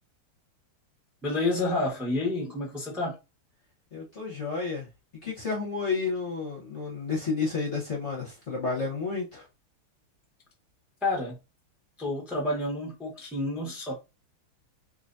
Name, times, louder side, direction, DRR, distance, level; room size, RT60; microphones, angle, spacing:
voice 1, 1.2-3.2 11.0-11.4 12.0-13.9, left 2 dB, ahead, 0.7 m, -29 dB
voice 2, 3.9-4.9 5.2-9.5, left 4 dB, 40° left, 1.1 m, -31 dB
3.9 x 3.0 x 2.6 m
omnidirectional pair, 2.4 m